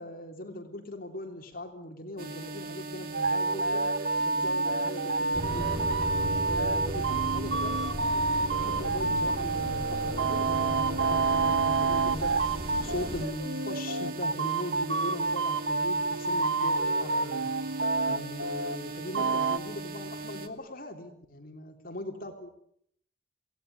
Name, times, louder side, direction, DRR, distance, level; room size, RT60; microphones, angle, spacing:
voice 1, 0.0-3.8 4.2-6.1 6.5-17.5 18.1-22.5, left 1 dB, 50° left, 4 dB, 3.4 m, -40 dB
sound 1, 2.2-20.5, right 3 dB, 50° right, 2.4 m, -40 dB
sound 2, 3.1-18.8 19.1-19.6, right 3 dB, 80° right, 1.2 m, -28 dB
sound 3, 5.3-13.2, equal, 30° right, 6.6 m, -37 dB
26.5 x 18.0 x 9.6 m, 0.71 s
head